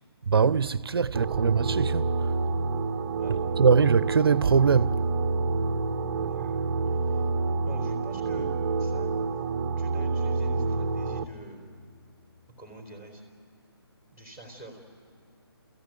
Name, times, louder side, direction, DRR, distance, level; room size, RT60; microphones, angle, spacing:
voice 1, 0.3-2.1 3.6-5.0, right 5 dB, 65° right, 0.5 m, -22 dB
sound 1, 1.1-11.2, right 3 dB, 20° right, 0.6 m, -28 dB
voice 2, 6.3-7.3 7.6-8.5 8.8-9.1 9.8-11.7 12.6-13.2 14.1-14.8, right 1 dB, 15° left, 3.5 m, -46 dB
29.5 x 15.0 x 9.2 m
figure-of-eight pair, 155°, 13 cm